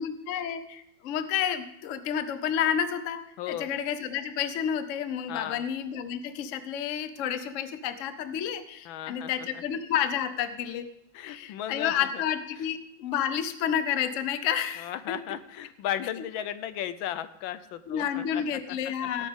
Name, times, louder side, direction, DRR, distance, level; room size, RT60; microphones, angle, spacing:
voice 1, 0.0-10.9 11.2-14.9 17.9-19.3, left 9 dB, 60° left, 10 dB, 0.8 m, -30 dB
voice 2, 3.4-3.7 5.3-5.6 8.8-9.6 11.1-12.2 12.6-12.7 14.8-19.3, left 11 dB, 80° left, 13 dB, 1.3 m, -36 dB
17.5 x 8.7 x 3.6 m, 0.82 s
omnidirectional pair, 2.2 m